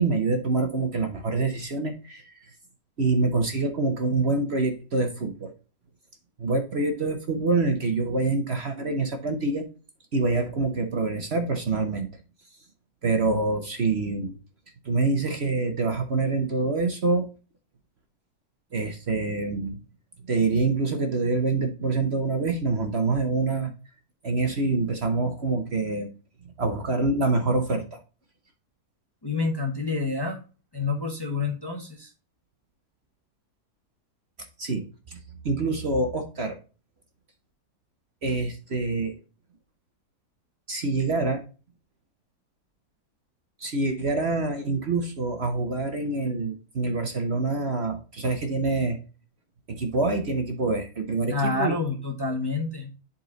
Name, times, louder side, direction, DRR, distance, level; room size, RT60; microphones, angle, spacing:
voice 1, 0.0-2.4 3.0-5.5 6.4-9.6 10.1-12.1 13.0-14.4 14.8-17.3 18.7-19.8 20.3-23.7 24.2-26.1 26.6-28.0 34.6-35.2 35.4-36.6 38.2-39.2 40.7-41.4 43.6-49.0 49.7-51.7, right 3 dB, 50° right, 6 dB, 1.1 m, -26 dB
voice 2, 29.2-30.4 30.7-32.1 51.3-52.9, left 3 dB, 15° left, 1 dB, 1.1 m, -28 dB
10.5 x 4.2 x 3.9 m, 0.35 s
omnidirectional pair, 1.6 m